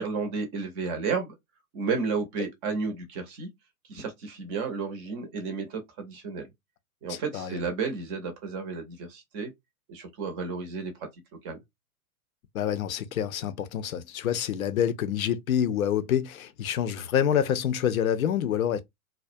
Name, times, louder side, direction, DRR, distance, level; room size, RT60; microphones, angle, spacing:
voice 1, 0.0-1.3 1.7-3.5 3.9-6.5 7.0-9.5 9.9-10.9 11.4-11.6, right 4 dB, 20° right, 0.5 m, -32 dB
voice 2, 7.1-7.7 12.5-18.8, left 9 dB, 70° left, 0.5 m, -27 dB
2.3 x 2.1 x 2.5 m
hypercardioid pair, 120°, 44 cm